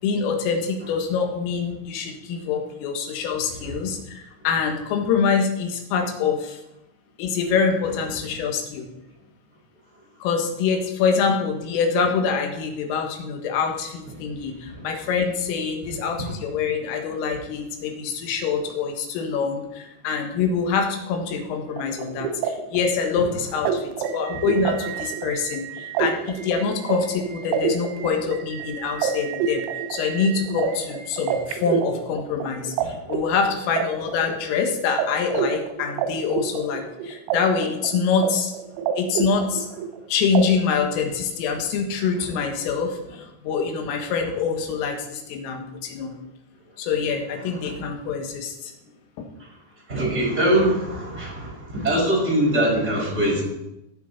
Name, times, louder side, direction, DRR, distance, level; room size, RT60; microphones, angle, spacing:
voice 1, 0.0-6.6 7.2-8.9 10.2-29.6 29.9-38.5 39.0-39.7 40.1-46.2 46.8-48.7 49.2-49.3, left 5 dB, 85° left, 3 dB, 4.0 m, -25 dB
sound 1, 21.7-32.8 33.1-34.6 35.0-35.1 35.3-37.4 37.6-38.3 38.6-40.0 40.4-40.5, right 8 dB, 90° right, 3.6 m, -28 dB
voice 2, 49.9-53.4, right 1 dB, 15° right, -5 dB, 4.9 m, -23 dB
18.0 x 6.6 x 4.2 m, 0.90 s
omnidirectional pair, 5.8 m